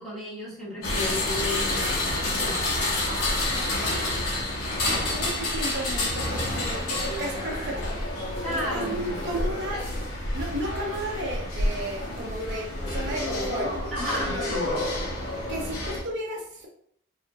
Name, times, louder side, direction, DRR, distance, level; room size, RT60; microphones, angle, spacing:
voice 1, 0.0-1.9 2.2-2.6 3.5-3.7 4.9-5.2 8.4-9.2 13.9-14.8, equal, ahead, -8 dB, 1.4 m, -33 dB
sound 1, 0.8-16.0, left 1 dB, 80° left, 1.1 m, -29 dB
voice 2, 5.1-8.0 8.5-9.9 10.3-13.8 14.2-14.5 15.5-16.7, right 1 dB, 55° right, -1 dB, 0.7 m, -34 dB
4.6 x 2.9 x 2.4 m, 0.64 s
head